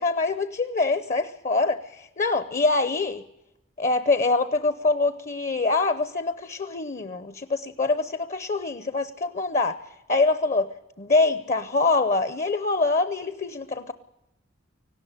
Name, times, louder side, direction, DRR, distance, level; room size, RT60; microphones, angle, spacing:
voice 1, 0.0-3.2 3.8-9.8 10.1-10.7 11.0-13.9, left 3 dB, 35° left, 13 dB, 0.7 m, -24 dB
18.5 x 16.5 x 9.9 m, 0.89 s
head